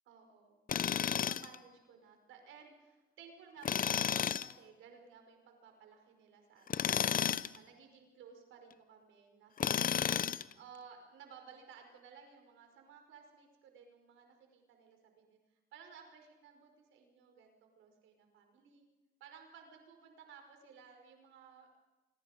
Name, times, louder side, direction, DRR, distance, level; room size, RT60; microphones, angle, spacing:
voice 1, 0.1-0.6 0.8-18.9 19.2-21.7, right 6 dB, 85° right, 4 dB, 5.3 m, -57 dB
Tools, 0.7-1.5 3.6-4.5 6.7-7.6 9.6-10.5, left 8 dB, 45° left, 0.8 m, -32 dB
25.5 x 25.5 x 5.3 m, 1.1 s
cardioid pair, 90°, 20 cm